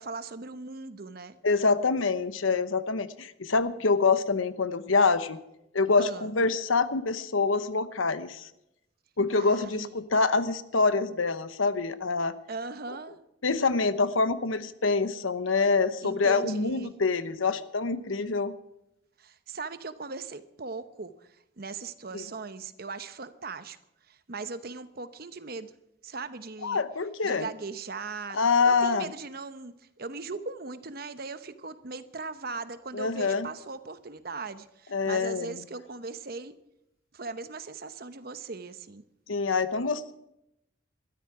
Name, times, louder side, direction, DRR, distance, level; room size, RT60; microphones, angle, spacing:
voice 1, 0.0-1.4 6.0-6.3 9.3-9.9 12.5-13.2 16.0-17.0 19.2-23.8 24.1-25.7 26.0-26.8 27.2-28.4 28.6-36.5 37.1-39.0, right 4 dB, 50° right, 12 dB, 0.9 m, -39 dB
voice 2, 1.4-5.4 5.7-8.5 9.2-12.3 13.4-18.6 22.1-22.2 26.6-27.5 28.3-29.1 32.9-33.5 34.9-35.6 39.3-40.1, left 4 dB, 90° left, 12 dB, 1.0 m, -26 dB
21.0 x 13.0 x 4.9 m, 0.84 s
head